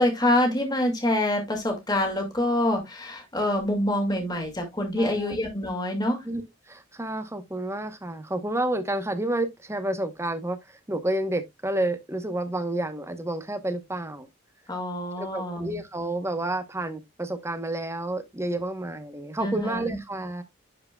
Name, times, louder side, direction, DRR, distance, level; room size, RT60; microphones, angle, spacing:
voice 1, 0.0-6.2 14.7-15.8 19.4-20.0, left 1 dB, 20° left, 2.0 m, -26 dB
voice 2, 5.0-5.4 6.3-6.4 6.7-10.6 10.9-14.3 15.2-20.4, right 1 dB, 15° right, 0.9 m, -30 dB
11.0 x 4.8 x 2.2 m
head